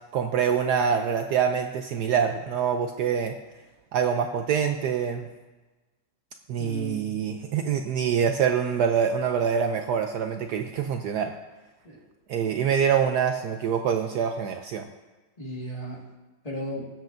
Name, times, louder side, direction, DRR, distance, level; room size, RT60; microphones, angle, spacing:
voice 1, 0.1-3.3 3.9-5.3 6.5-11.3 12.3-14.9, right 7 dB, 70° right, 5 dB, 1.1 m, -25 dB
voice 2, 6.6-7.3 11.8-12.1 12.4-12.5 15.4-16.0 16.4-16.9, equal, 20° left, -3 dB, 1.9 m, -36 dB
23.0 x 7.7 x 2.6 m, 1.2 s
omnidirectional pair, 2.0 m